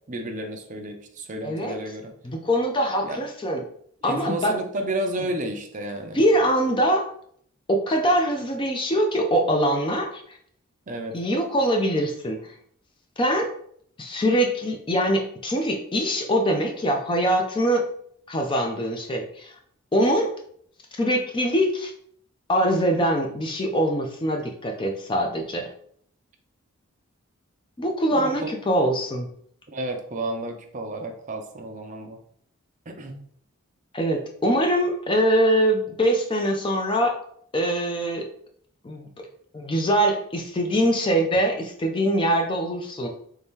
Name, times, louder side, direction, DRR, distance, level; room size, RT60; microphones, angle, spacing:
voice 1, 0.1-2.1 3.0-3.2 4.0-6.2 10.9-11.2 28.1-28.6 29.7-32.2 32.9-33.1, right 1 dB, 35° right, 4 dB, 0.4 m, -31 dB
voice 2, 1.4-1.8 2.2-3.6 4.0-4.6 6.1-7.1 7.7-10.4 11.1-12.5 13.2-13.5 14.0-17.8 18.3-19.6 19.9-20.3 21.0-21.9 22.5-25.7 27.8-29.3 33.9-37.1 37.5-38.3 38.8-39.1 39.5-43.1, equal, 20° left, 3 dB, 0.4 m, -23 dB
3.4 x 2.8 x 3.6 m, 0.63 s
head